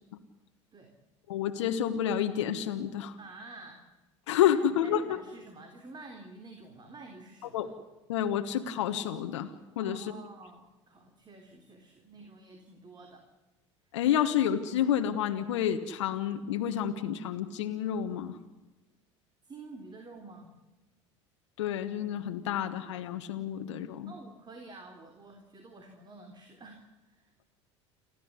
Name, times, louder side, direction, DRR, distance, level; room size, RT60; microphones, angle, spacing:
voice 1, 1.3-3.2 4.3-5.0 7.5-7.7 8.1-10.1 13.9-18.4 21.6-24.1, left 10 dB, 70° left, 7 dB, 1.4 m, -29 dB
voice 2, 3.2-3.9 4.6-7.7 9.8-13.3 19.4-20.5 24.1-27.3, right 3 dB, 30° right, 4 dB, 3.6 m, -49 dB
29.5 x 12.5 x 9.7 m, 1.1 s
hypercardioid pair, 70°, 16 cm